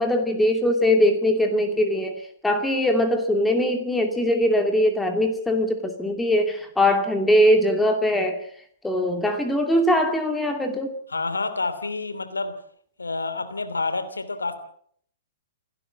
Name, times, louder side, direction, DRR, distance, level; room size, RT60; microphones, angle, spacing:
voice 1, 0.0-8.4 8.8-11.0, left 1 dB, 5° left, 4 dB, 2.6 m, -21 dB
voice 2, 11.1-12.6 13.0-14.6, left 3 dB, 75° left, 11 dB, 3.0 m, -28 dB
28.5 x 12.5 x 7.6 m, 0.63 s
figure-of-eight pair, 110°, 0 cm